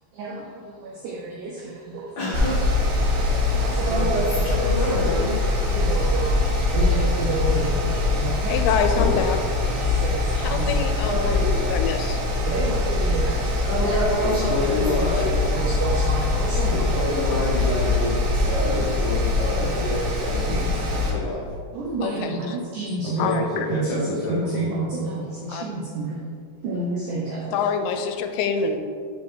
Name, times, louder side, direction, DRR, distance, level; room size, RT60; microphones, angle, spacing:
voice 1, 0.1-2.1 3.2-4.4 4.8-5.1 5.7-6.4 6.7-9.2 9.6-10.7 12.5-13.5 13.8-14.0 14.3-14.4 14.9-15.0 15.5-17.0 17.3-17.4 19.6-19.7 20.4-21.0 21.7-23.3 23.7-26.2 26.6-27.6, right 3 dB, 90° right, -3 dB, 1.7 m, -30 dB
voice 2, 2.2-2.6 3.8-5.8 11.0-11.7 13.6-15.5 22.1-22.2, equal, 55° left, -9 dB, 2.3 m, -27 dB
Mechanical fan, 2.3-21.1, left 2 dB, 75° right, 1.6 m, -23 dB
voice 3, 8.5-9.5 10.4-12.2 22.0-22.6 23.2-23.7 25.5-25.6 27.5-28.8, left 6 dB, 90° left, 7 dB, 2.5 m, -26 dB
voice 4, 14.2-15.4 16.7-18.2 18.5-21.4 23.0-24.7, left 2 dB, 70° left, -6 dB, 1.8 m, -28 dB
6.6 x 5.0 x 3.8 m, 2.2 s
omnidirectional pair, 4.4 m